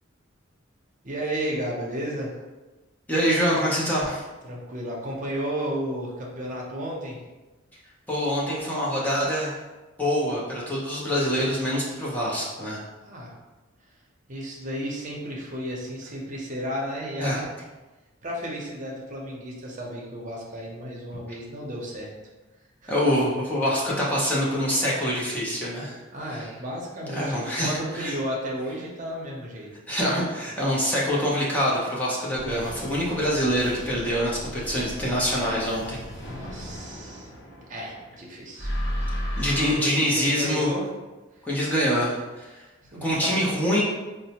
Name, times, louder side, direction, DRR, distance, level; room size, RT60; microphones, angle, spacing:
voice 1, 1.0-2.3 4.4-7.2 13.0-13.3 14.3-17.5 18.2-22.1 22.8-22.9 26.1-29.7 36.3-37.3 37.7-38.7 39.0-40.9 42.9-43.4, equal, 40° right, -3 dB, 0.7 m, -33 dB
voice 2, 3.1-4.2 8.1-9.6 10.0-12.8 17.2-17.4 22.9-26.0 27.1-28.1 29.9-36.0 39.4-40.7 41.5-42.5 43.0-43.8, equal, 10° left, -6 dB, 0.7 m, -25 dB
sound 1, 32.3-38.1 38.6-39.8, equal, 60° left, 0.8 m, -34 dB
4.1 x 2.1 x 2.8 m, 1.2 s
head